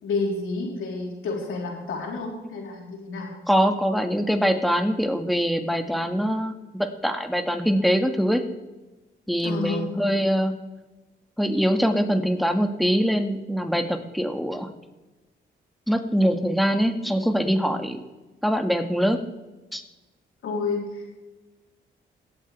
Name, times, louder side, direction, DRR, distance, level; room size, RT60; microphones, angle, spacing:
voice 1, 0.0-3.3 9.4-9.8 20.4-21.2, left 3 dB, 75° left, -2 dB, 3.8 m, -30 dB
voice 2, 3.5-8.4 9.3-10.5 11.4-14.7 15.9-18.0 18.4-19.2 19.7-19.8, equal, ahead, 5 dB, 1.8 m, -23 dB
21.5 x 8.1 x 3.4 m, 1.1 s
supercardioid pair, 60°, 21 cm